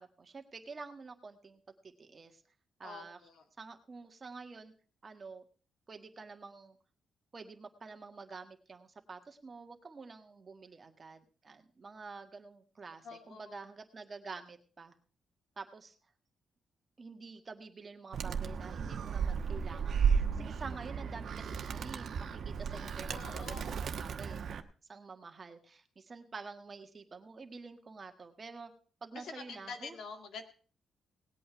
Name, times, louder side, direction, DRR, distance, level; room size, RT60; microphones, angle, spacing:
voice 1, 0.0-2.4 2.8-3.2 3.6-4.7 5.0-5.4 5.9-6.8 7.3-14.9 15.6-15.9 17.0-20.0 20.3-24.5 24.9-28.7 29.0-30.0, right 4 dB, 35° right, 5 dB, 1.7 m, -48 dB
voice 2, 2.8-3.4 13.0-13.7 23.1-23.7 29.1-30.4, left 5 dB, 80° left, 6 dB, 2.0 m, -46 dB
Animal, 18.1-24.6, right 6 dB, 60° right, 1.1 m, -34 dB
18.5 x 8.5 x 4.6 m, 0.40 s
cardioid pair, 110°, 0 cm